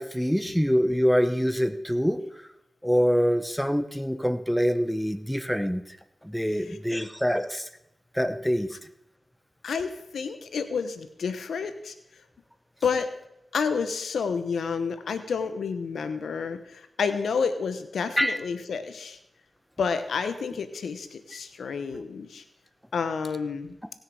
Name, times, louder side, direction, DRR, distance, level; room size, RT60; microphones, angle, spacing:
voice 1, 0.0-2.2 2.8-5.8 6.2-7.6 8.1-8.7 18.2-18.4, equal, ahead, 9 dB, 1.0 m, -25 dB
voice 2, 9.6-11.9 12.8-13.1 13.5-19.2 19.8-22.4 22.9-23.8, left 5 dB, 90° left, 10 dB, 0.8 m, -30 dB
18.0 x 6.5 x 4.8 m, 0.84 s
cardioid pair, 45°, 0 cm